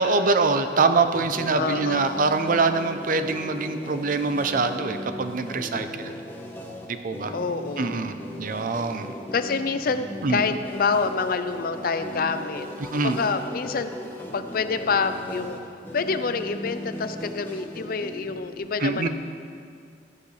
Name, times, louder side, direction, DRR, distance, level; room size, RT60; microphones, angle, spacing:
voice 1, 0.0-6.1 6.9-7.3 7.8-9.1 10.2-10.4 12.8-13.2 18.8-19.1, right 3 dB, 50° right, 9 dB, 0.6 m, -24 dB
sound 1, 1.1-18.6, equal, 10° left, 1.1 m, -38 dB
voice 2, 1.6-2.3 7.3-8.0 9.3-12.7 12.9-13.9 14.3-15.6 15.9-19.1, left 4 dB, 55° left, 10 dB, 0.5 m, -27 dB
14.0 x 9.7 x 3.2 m, 2.2 s
head